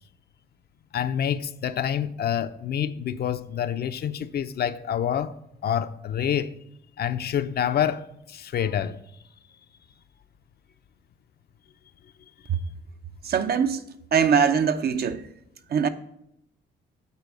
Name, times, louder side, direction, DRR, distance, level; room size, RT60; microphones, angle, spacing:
voice 1, 0.9-5.3 5.6-6.5 7.0-9.0, left 9 dB, 55° left, 0.5 m, -27 dB
voice 2, 13.2-13.8 14.1-15.2 15.7-15.9, right 7 dB, 50° right, 0.6 m, -22 dB
8.4 x 4.2 x 6.2 m
cardioid pair, 90°, 20 cm